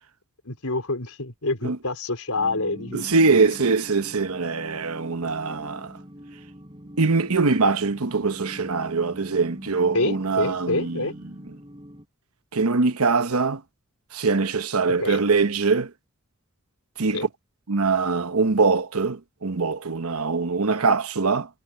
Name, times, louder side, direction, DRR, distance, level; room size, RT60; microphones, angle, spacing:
voice 1, 0.5-3.4 9.9-11.2 15.0-15.2 17.1-17.3, left 2 dB, 80° left, 4.2 m, -27 dB
sound 1, 2.4-12.1, equal, 20° right, 6.8 m, -42 dB
voice 2, 2.9-5.9 7.0-11.1 12.5-13.6 14.1-15.9 17.0-17.3 17.7-21.5, right 4 dB, 85° right, 1.1 m, -23 dB
head